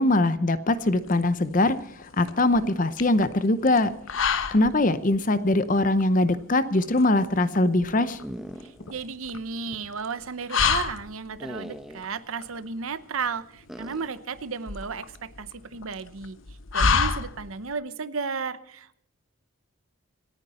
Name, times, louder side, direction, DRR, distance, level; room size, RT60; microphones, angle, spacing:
voice 1, 0.0-1.8 2.2-3.9 4.5-8.2, left 2 dB, 40° left, 13 dB, 0.7 m, -22 dB
sound 1, 0.7-17.7, left 5 dB, 70° left, 1.0 m, -31 dB
sound 2, 8.2-9.1 9.4-9.5 11.4-12.2 13.7-14.2, equal, ahead, 0.9 m, -40 dB
voice 2, 8.6-16.4 16.7-19.0, right 5 dB, 90° right, 14 dB, 0.8 m, -34 dB
27.5 x 9.7 x 4.2 m, 0.72 s
head